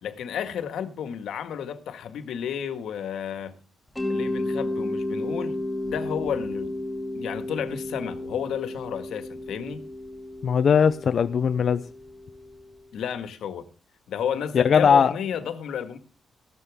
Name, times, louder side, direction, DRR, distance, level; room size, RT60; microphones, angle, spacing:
voice 1, 0.0-3.5 4.1-5.6 5.8-6.7 7.1-9.8 12.9-13.6 14.1-16.0, left 8 dB, 85° left, 1.7 m, -32 dB
Mallet percussion, 4.0-12.7, left 1 dB, 10° left, 2.7 m, -32 dB
voice 2, 10.4-11.8 14.5-15.1, left 7 dB, 45° left, 0.6 m, -19 dB
15.0 x 12.5 x 3.6 m
wide cardioid pair, 160°, 0 cm